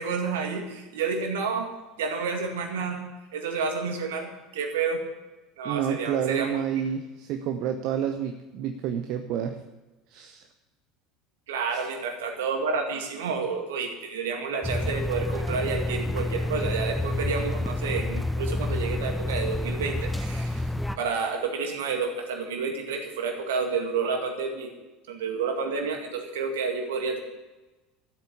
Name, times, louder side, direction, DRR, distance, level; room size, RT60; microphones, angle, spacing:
voice 1, 0.0-3.0 3.3-5.1 5.6-6.6 11.5-20.7 21.0-24.7 25.1-27.2, right 5 dB, 65° right, 4 dB, 2.1 m, -30 dB
voice 2, 5.6-9.6 10.1-10.5 11.7-11.9, right 9 dB, 50° right, 6 dB, 0.9 m, -29 dB
sound 1, 14.6-21.0, left 1 dB, 5° left, 1.0 m, -29 dB
13.5 x 8.3 x 8.2 m, 1.1 s
figure-of-eight pair, 70°, 0 cm